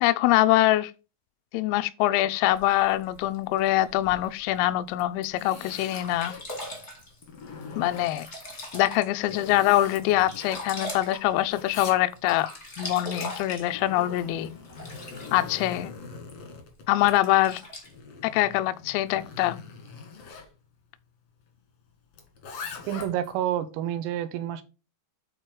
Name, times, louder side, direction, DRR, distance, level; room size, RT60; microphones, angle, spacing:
voice 1, 0.0-0.9 1.5-6.3 7.8-8.3 8.7-12.5 12.8-14.5 15.3-15.9 16.9-17.6 18.2-19.6, left 15 dB, 85° left, 3.3 m, -24 dB
Sink (filling or washing), 2.5-4.5 5.1-5.2 5.6-5.7 5.9-9.4 9.8-11.9 12.1-15.5 16.3-16.4 17.1-17.9, left 1 dB, 35° left, 1.0 m, -40 dB
Zipper (clothing), 4.9-6.5 7.0-8.3 8.8-11.1 11.3-12.5 13.3-20.5 22.1-23.3, left 4 dB, 60° left, 1.6 m, -42 dB
voice 2, 22.9-24.6, right 11 dB, 80° right, 3.3 m, -29 dB
9.1 x 4.5 x 4.7 m
omnidirectional pair, 6.0 m